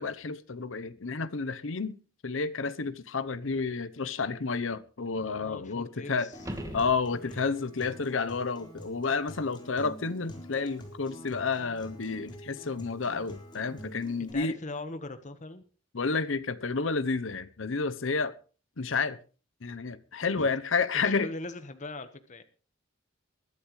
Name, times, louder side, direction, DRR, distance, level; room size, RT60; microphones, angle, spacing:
voice 1, 0.0-2.0 2.2-6.3 6.7-14.6 15.9-18.3 18.8-19.2 19.6-21.3, left 4 dB, 75° left, 0.9 m, -30 dB
voice 2, 5.1-6.3 7.2-7.5 14.3-15.6 20.4-20.5 20.9-22.4, left 2 dB, 40° left, 1.3 m, -41 dB
Acoustic guitar, 6.3-14.3, equal, 25° left, 4.4 m, -47 dB
sound 1, 6.3-7.6 12.4-12.5, equal, 15° right, 2.3 m, -40 dB
21.5 x 12.0 x 3.2 m
head